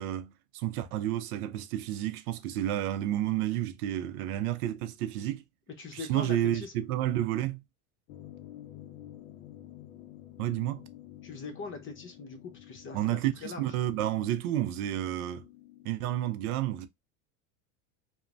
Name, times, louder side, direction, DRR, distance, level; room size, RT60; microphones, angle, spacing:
voice 1, 0.0-5.4 5.9-7.6 10.4-10.8 12.9-15.5 15.8-16.9, right 12 dB, 80° right, 0.6 m, -31 dB
voice 2, 5.8-6.7 11.2-13.7, left 4 dB, 30° left, 0.8 m, -41 dB
sound 1, 8.1-16.3, left 12 dB, 50° left, 0.5 m, -50 dB
3.0 x 2.1 x 2.5 m
supercardioid pair, 105°, 43 cm